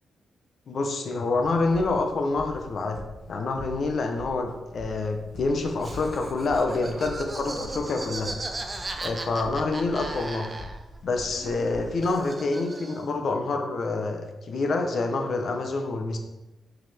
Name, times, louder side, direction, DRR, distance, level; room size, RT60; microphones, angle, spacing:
voice 1, 0.7-3.0 3.3-8.3 9.0-10.5 11.0-16.2, left 3 dB, 50° left, 4 dB, 0.8 m, -27 dB
sound 1, 1.3-12.2, equal, 70° left, 2.2 m, -44 dB
Laughter, 5.8-11.0 11.2-13.2, right 2 dB, 20° right, 0.5 m, -37 dB
6.1 x 4.9 x 3.5 m, 1.0 s
wide cardioid pair, 150°, 0 cm